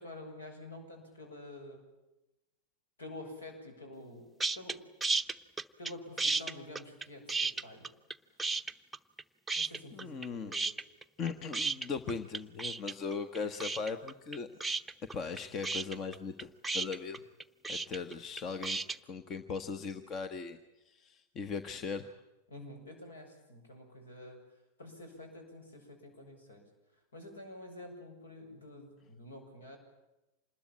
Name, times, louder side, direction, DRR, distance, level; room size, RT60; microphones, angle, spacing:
voice 1, 0.0-1.8 3.0-4.2 4.6-4.8 5.8-7.9 9.6-10.7 22.5-24.4 24.8-26.6 27.1-29.8, left 1 dB, 70° left, 4 dB, 7.4 m, -48 dB
sound 1, 4.4-4.7 5.0-5.9 6.2-8.1 8.4-9.2 9.5-10.3 10.5-19.0, right 3 dB, 5° right, 0.9 m, -33 dB
voice 2, 9.9-10.5 11.2-14.5 15.1-17.2 17.7-18.8 19.1-20.6 20.9-22.1, left 5 dB, 30° left, 10 dB, 1.3 m, -38 dB
27.0 x 21.0 x 8.8 m, 0.99 s
figure-of-eight pair, 90°, 0 cm